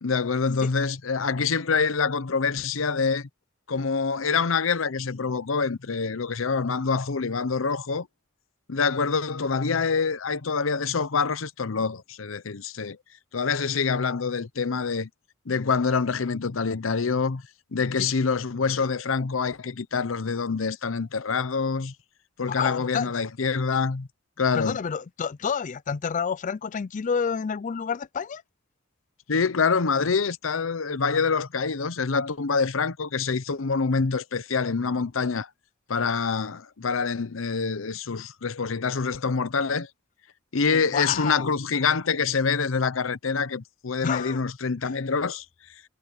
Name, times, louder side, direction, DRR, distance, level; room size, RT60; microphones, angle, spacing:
voice 1, 0.0-3.3 3.7-8.1 8.7-13.0 13.3-15.1 15.5-17.4 17.7-21.9 22.4-24.1 24.4-24.8 29.3-35.5 35.9-39.9 40.5-45.4, left 5 dB, 80° left, 0.8 m, -26 dB
voice 2, 22.4-23.1 24.5-28.4 40.7-41.5 44.0-44.4, left 6 dB, 40° left, 0.4 m, -29 dB
head